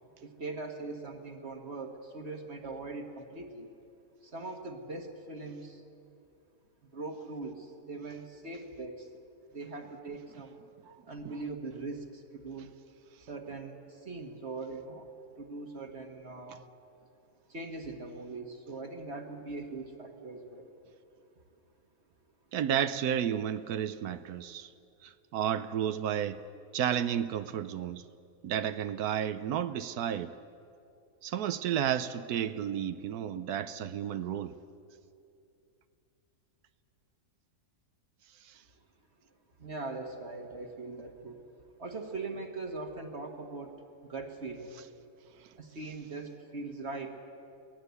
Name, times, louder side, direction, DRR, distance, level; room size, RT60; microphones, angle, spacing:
voice 1, 0.2-3.7 4.2-5.8 6.9-9.1 9.5-10.6 11.1-12.8 13.3-16.6 17.5-20.7 39.6-41.4 41.8-43.8 44.1-44.8 45.6-47.1, right 3 dB, 45° right, 1.6 m, -41 dB
voice 2, 22.5-24.7 25.0-26.4 26.7-28.0 28.4-30.3 31.2-34.5, right 9 dB, 75° right, 1.2 m, -32 dB
23.0 x 17.5 x 8.2 m
omnidirectional pair, 1.7 m